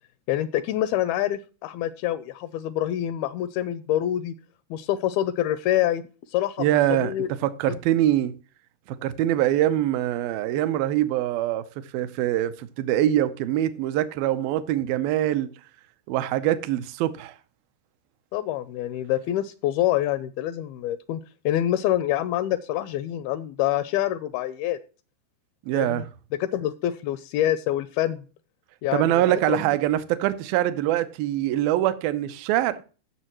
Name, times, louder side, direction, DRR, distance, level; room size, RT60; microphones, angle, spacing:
voice 1, 0.3-4.3 4.7-6.0 6.3-6.7 7.0-7.3 7.7-7.8 18.3-24.8 25.7-26.0 26.4-28.2 28.8-29.6, left 12 dB, 80° left, 2.3 m, -26 dB
voice 2, 6.6-7.1 7.4-8.3 9.0-11.6 11.9-15.5 16.1-17.3 25.7-26.1 28.9-32.8, right 13 dB, 80° right, 2.3 m, -23 dB
15.5 x 6.7 x 3.0 m
omnidirectional pair, 4.7 m